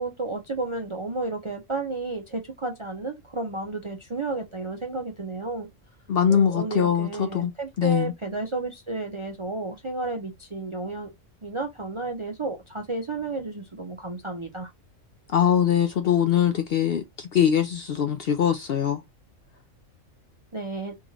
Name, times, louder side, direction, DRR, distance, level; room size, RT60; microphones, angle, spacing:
voice 1, 0.0-5.7 6.3-11.1 11.4-14.7 20.5-21.0, right 3 dB, 40° right, 0.4 m, -32 dB
voice 2, 6.1-7.5 7.8-8.1 15.3-19.0, left 9 dB, 65° left, 0.6 m, -22 dB
3.6 x 2.4 x 3.1 m
omnidirectional pair, 1.3 m